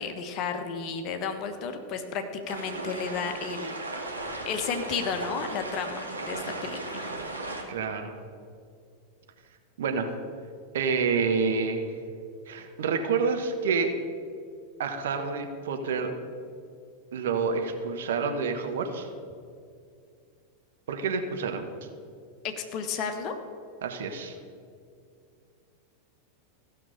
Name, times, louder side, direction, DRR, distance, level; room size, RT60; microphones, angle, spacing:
voice 1, 0.0-3.7 4.4-7.1 22.4-23.3, left 6 dB, 40° left, 6 dB, 1.2 m, -33 dB
sound 1, 2.5-7.6, right 2 dB, 80° right, 1.5 m, -36 dB
voice 2, 7.7-8.2 9.8-10.1 10.7-11.9 12.5-13.9 14.8-16.1 17.1-19.1 20.9-21.7 23.8-24.4, right 5 dB, 60° right, 5 dB, 1.2 m, -28 dB
15.5 x 6.0 x 6.8 m, 2.3 s
figure-of-eight pair, 90°, 0 cm